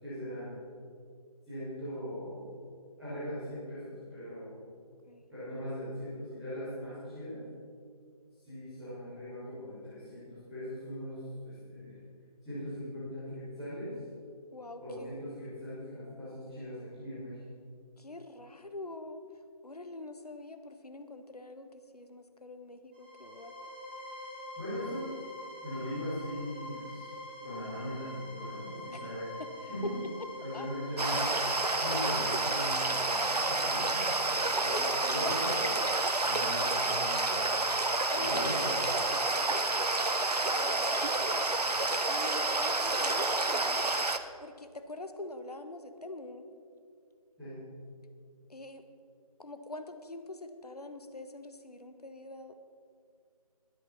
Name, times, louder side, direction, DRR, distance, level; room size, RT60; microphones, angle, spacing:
voice 1, 0.0-0.5 1.5-2.5 3.0-4.6 5.3-7.4 8.4-12.0 12.4-13.9 14.8-17.4 24.6-25.1 25.6-27.1 27.4-29.9 30.4-35.8 36.2-37.5 38.1-38.7 47.4-47.6, equal, ahead, -23 dB, 0.5 m, -40 dB
voice 2, 14.5-15.1 18.0-19.2 19.6-23.5 28.9-29.1 29.8-30.0 30.5-30.7 34.7-35.1 38.1-38.4 38.9-39.6 40.4-41.8 42.1-43.9 44.4-46.4 48.5-48.8 49.4-52.6, left 2 dB, 75° left, 8 dB, 1.4 m, -45 dB
sound 1, 22.9-40.3, left 1 dB, 15° right, 1.8 m, -45 dB
sound 2, 31.0-44.2, right 2 dB, 85° right, 0.9 m, -29 dB
22.0 x 8.2 x 4.2 m, 2.2 s
figure-of-eight pair, 160°, 20 cm